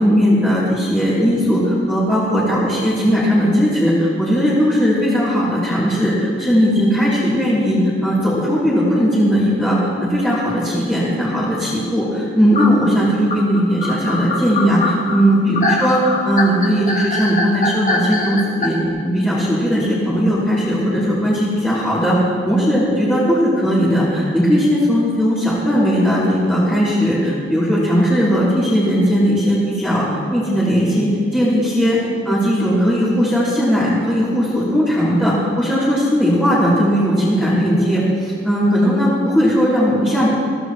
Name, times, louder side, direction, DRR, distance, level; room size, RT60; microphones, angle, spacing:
voice 1, 0.0-16.0 16.2-18.8 19.0-30.1 30.3-32.0 32.3-40.3, equal, 10° left, -12 dB, 3.4 m, -17 dB
sound 1, 12.5-18.7, left 3 dB, 45° left, 1.5 m, -22 dB
23.0 x 15.5 x 3.2 m, 2.1 s
head